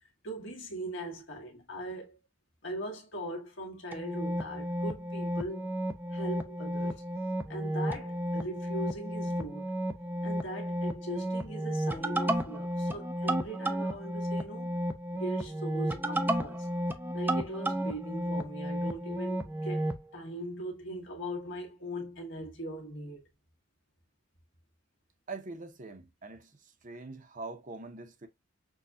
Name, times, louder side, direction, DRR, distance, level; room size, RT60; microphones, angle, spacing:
voice 1, 0.2-2.2 2.6-5.7 6.1-7.0 7.5-9.7 10.2-14.8 15.1-16.7 17.1-23.2, equal, 65° left, 1.5 m, -40 dB
sound 1, 3.9-20.0, right 1 dB, 10° right, 0.5 m, -33 dB
voice 2, 25.3-28.3, right 3 dB, 40° right, 0.8 m, -43 dB
6.2 x 2.3 x 2.6 m
head